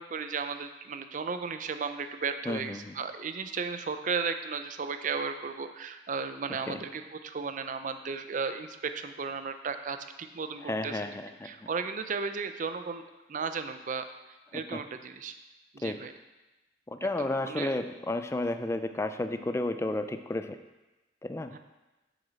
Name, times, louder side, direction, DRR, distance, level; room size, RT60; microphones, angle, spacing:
voice 1, 0.0-11.2 11.4-14.1 14.5-15.3 15.7-16.1 17.2-17.7 21.5-21.6, right 5 dB, 45° right, 9 dB, 0.5 m, -35 dB
voice 2, 2.5-2.9 6.7-6.8 10.6-11.5 14.5-14.8 15.8-16.0 16.9-20.6 21.2-21.5, left 2 dB, 15° left, 9 dB, 0.4 m, -32 dB
7.2 x 6.9 x 4.1 m, 1.1 s
head